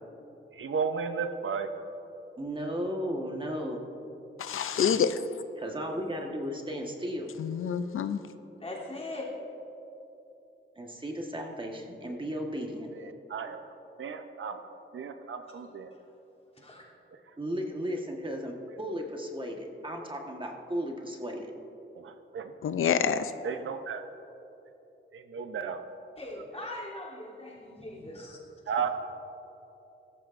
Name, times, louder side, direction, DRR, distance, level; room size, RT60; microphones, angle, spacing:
voice 1, 0.5-1.7 12.9-15.9 21.9-22.5 23.4-24.0 25.1-25.8 26.4-26.5 28.7-28.9, right 6 dB, 75° right, 7 dB, 0.7 m, -34 dB
voice 2, 2.4-3.8 5.6-7.3 10.8-12.9 17.4-21.5, equal, 25° right, 1 dB, 1.3 m, -35 dB
voice 3, 4.4-5.2 7.4-8.2 22.7-23.3, left 7 dB, 80° left, 10 dB, 0.5 m, -27 dB
voice 4, 8.6-9.3 16.6-16.8 26.2-28.4, left 2 dB, 30° left, -5 dB, 3.0 m, -40 dB
16.5 x 14.0 x 2.6 m, 2.9 s
wide cardioid pair, 85°, 21 cm